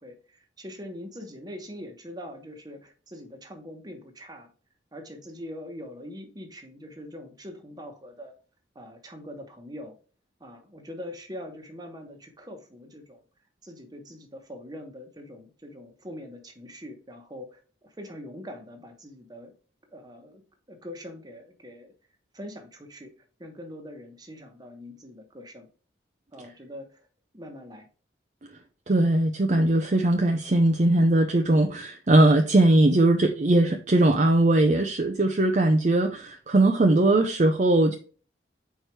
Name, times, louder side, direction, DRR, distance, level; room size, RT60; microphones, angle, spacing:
voice 1, 0.0-4.5 4.9-8.3 8.7-10.0 10.4-13.2 13.6-19.5 19.9-20.4 20.7-21.9 22.3-23.1 23.4-25.7 26.3-27.0 27.3-27.9, equal, 20° right, 1.1 m, -43 dB
voice 2, 28.9-38.0, right 2 dB, 40° right, 0.5 m, -20 dB
4.6 x 4.6 x 4.6 m
head